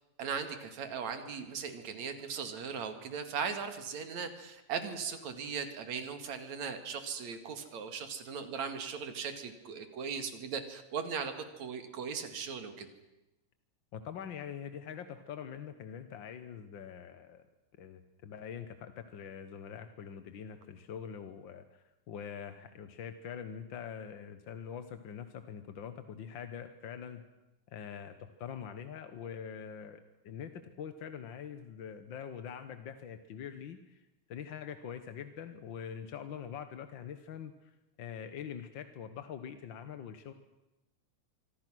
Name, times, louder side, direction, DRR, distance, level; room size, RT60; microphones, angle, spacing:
voice 1, 0.2-12.9, right 6 dB, 70° right, 8 dB, 3.3 m, -38 dB
voice 2, 13.9-17.5 17.8-27.2 27.7-34.0 34.3-40.3, left 8 dB, 55° left, 9 dB, 1.4 m, -44 dB
26.0 x 24.5 x 6.3 m, 0.95 s
omnidirectional pair, 3.4 m